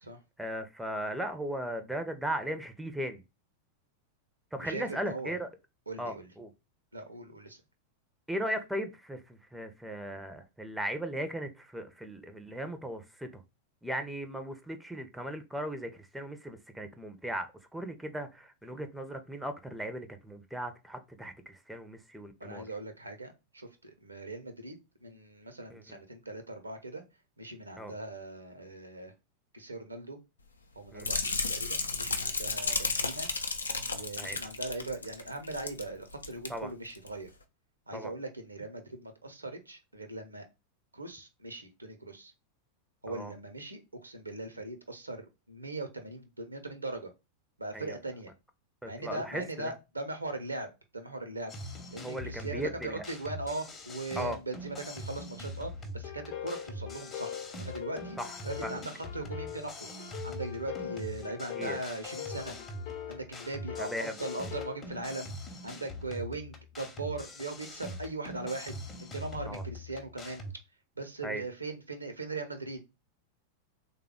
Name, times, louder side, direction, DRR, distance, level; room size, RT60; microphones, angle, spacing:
voice 1, 0.4-3.2 4.5-5.5 6.0-6.5 8.3-13.4 13.8-22.7 25.7-26.0 27.8-27.9 30.9-31.1 34.2-34.4 36.5-36.7 37.9-38.1 43.1-43.3 47.7-48.0 48.8-49.7 52.0-53.0 54.2-54.4 58.2-58.8 61.5-61.8 63.8-64.1 69.5-69.6 71.2-71.4, right 1 dB, 5° right, 0.5 m, -37 dB
voice 2, 4.6-5.3 5.9-6.3 6.9-7.6 22.4-27.0 27.4-29.1 29.5-30.2 30.8-33.3 33.9-37.3 37.9-40.5 40.9-42.3 43.0-47.1 47.6-48.3 48.8-50.7 50.9-51.5 51.9-58.2 58.4-59.9 60.2-62.6 63.1-65.3 65.6-70.4 71.0-72.8, right 2 dB, 80° right, 0.6 m, -40 dB
sound 1, 31.0-35.9 36.1-36.5 36.9-37.1, left 3 dB, 75° left, 0.5 m, -33 dB
sound 2, 51.5-70.5, left 1 dB, 20° left, 0.8 m, -43 dB
sound 3, 56.0-64.8, left 9 dB, 50° left, 0.8 m, -42 dB
3.4 x 2.2 x 3.5 m
figure-of-eight pair, 90°, 0 cm